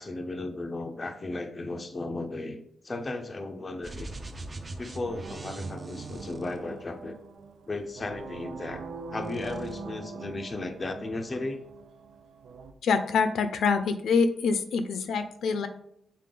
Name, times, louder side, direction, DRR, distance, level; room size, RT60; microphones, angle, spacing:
voice 1, 0.0-2.6 2.8-4.1 4.8-7.2 7.7-8.8 9.1-11.6, left 2 dB, 25° left, 6 dB, 0.5 m, -35 dB
sound 1, 3.8-7.1 7.8-8.9 9.2-9.8, right 2 dB, 25° right, 0.6 m, -42 dB
sound 2, 5.0-12.7, right 4 dB, 70° right, 0.6 m, -43 dB
voice 2, 12.8-15.7, left 5 dB, 75° left, 10 dB, 0.6 m, -25 dB
7.5 x 4.1 x 3.8 m, 0.76 s
wide cardioid pair, 160°, 0 cm